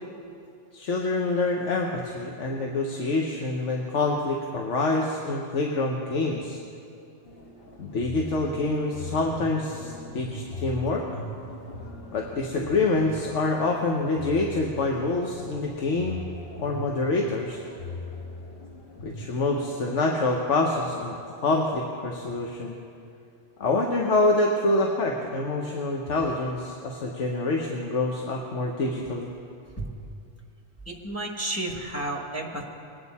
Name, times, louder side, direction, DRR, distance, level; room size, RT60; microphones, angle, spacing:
voice 1, 0.7-6.6 7.8-11.0 12.1-16.2 16.6-17.6 19.0-21.1 21.4-22.8 23.6-29.3, left 2 dB, 90° left, 0 dB, 1.3 m, -26 dB
sound 1, 7.2-20.0, left 2 dB, 55° left, 1.3 m, -40 dB
voice 2, 30.9-32.6, right 2 dB, 15° left, 0 dB, 1.1 m, -32 dB
21.5 x 9.0 x 4.2 m, 2.5 s
omnidirectional pair, 1.2 m